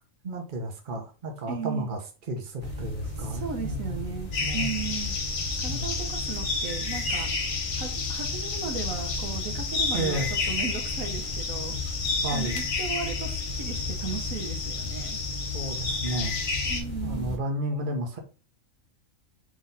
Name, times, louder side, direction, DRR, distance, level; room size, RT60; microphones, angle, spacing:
voice 1, 0.2-2.0 2.3-4.0 4.4-4.7 5.7-6.0 9.9-10.3 12.2-12.6 15.5-16.4 17.0-18.2, right 1 dB, 45° right, 3 dB, 1.0 m, -32 dB
voice 2, 1.5-1.9 3.2-5.2 5.6-7.3 7.7-11.8 12.3-15.2 16.7-17.4, right 6 dB, 85° right, 3 dB, 1.4 m, -36 dB
sound 1, 2.6-17.4, left 2 dB, 35° left, 1.5 m, -35 dB
sound 2, 4.3-16.8, left 4 dB, 75° left, 1.3 m, -31 dB
4.0 x 3.1 x 3.9 m, 0.33 s
omnidirectional pair, 1.4 m